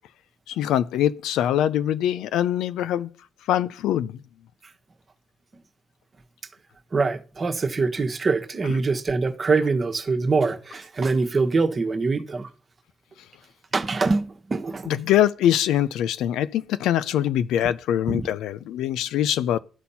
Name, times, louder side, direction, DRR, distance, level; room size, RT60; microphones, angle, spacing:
voice 1, 0.5-3.1 3.5-4.2 14.9-19.6, left 11 dB, 85° left, 0.5 m, -23 dB
voice 2, 6.9-12.5 13.7-14.9 18.1-18.3, right 4 dB, 35° right, 1.2 m, -24 dB
12.0 x 4.2 x 5.6 m
cardioid pair, 90°, 0 cm